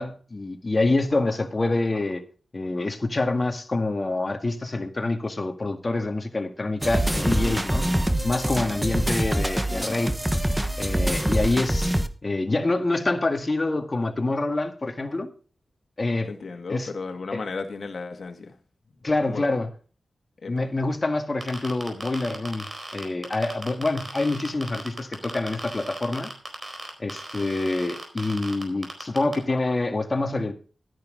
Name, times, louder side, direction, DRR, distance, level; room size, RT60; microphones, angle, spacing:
voice 1, 0.0-2.2 2.5-7.8 8.2-10.1 10.8-11.9 12.2-15.3 16.0-16.3 16.7-16.9 17.3-17.4 19.0-19.7 20.5-26.3 27.0-30.5, left 2 dB, 40° left, 1.9 m, -26 dB
sound 1, 6.8-12.1, right 1 dB, 10° right, 1.1 m, -25 dB
voice 2, 16.3-18.6 19.3-19.5 20.4-20.7, left 4 dB, 65° left, 2.1 m, -34 dB
sound 2, 21.4-29.3, right 2 dB, 40° right, 4.3 m, -37 dB
12.5 x 10.5 x 3.9 m
cardioid pair, 60°, 0 cm